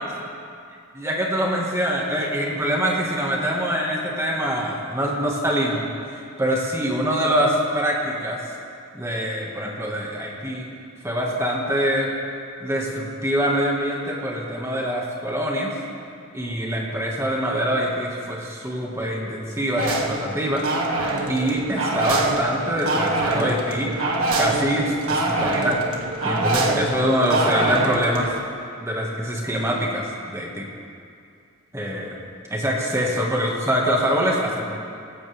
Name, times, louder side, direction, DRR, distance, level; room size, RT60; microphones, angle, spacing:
voice 1, 0.9-5.9 6.4-8.4 8.9-10.7 11.0-12.1 12.6-15.7 16.3-20.6 21.3-23.9 24.4-25.8 26.2-28.3 28.8-30.7 31.7-32.1 32.5-34.7, equal, 15° right, -2 dB, 1.8 m, -24 dB
sound 1, 19.8-28.4, right 2 dB, 90° right, 1.6 m, -25 dB
18.0 x 16.5 x 3.6 m, 2.4 s
head